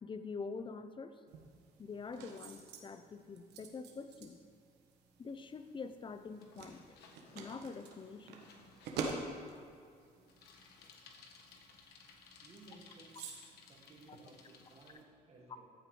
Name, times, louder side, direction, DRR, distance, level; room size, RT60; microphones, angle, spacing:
voice 1, 0.0-1.2 1.8-4.4 5.2-6.8 7.3-8.4, left 4 dB, 30° left, 10 dB, 0.7 m, -45 dB
sound 1, 1.3-15.0, right 4 dB, 80° right, 1.5 m, -49 dB
Bicycle, 5.5-14.9, left 5 dB, 75° left, 1.3 m, -61 dB
voice 2, 12.4-13.3 13.7-15.7, right 2 dB, 35° right, -2 dB, 1.9 m, -58 dB
14.5 x 8.1 x 3.9 m, 2.2 s
cardioid pair, 110°, 17 cm